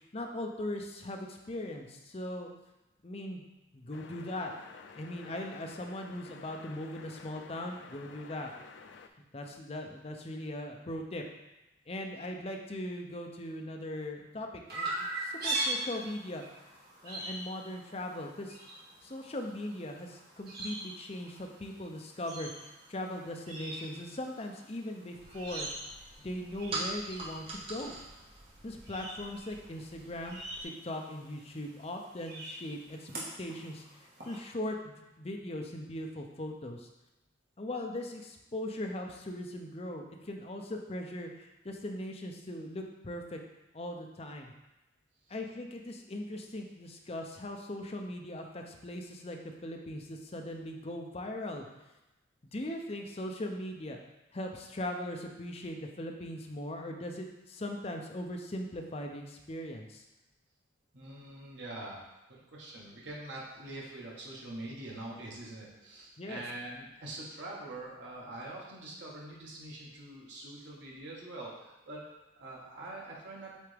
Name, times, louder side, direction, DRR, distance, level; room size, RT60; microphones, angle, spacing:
voice 1, 0.0-2.5 3.0-3.4 3.7-4.5 5.0-8.5 9.3-11.2 11.9-16.4 17.0-18.6 19.0-25.7 26.2-28.0 28.6-33.1 33.4-36.9 37.6-43.4 43.7-44.5 45.3-51.7 52.5-54.0 54.3-60.0 66.2-66.4, left 1 dB, 35° left, 2 dB, 0.6 m, -39 dB
sound 1, 3.9-9.1, left 5 dB, 70° left, 0.4 m, -52 dB
Chirp tweet, 14.7-34.3, right 2 dB, 55° right, 1.6 m, -42 dB
sound 2, 25.1-30.6, right 2 dB, 30° right, 0.8 m, -44 dB
voice 2, 60.9-62.0 62.3-73.5, right 2 dB, 75° right, -4 dB, 1.6 m, -44 dB
8.2 x 3.4 x 3.4 m, 0.99 s
head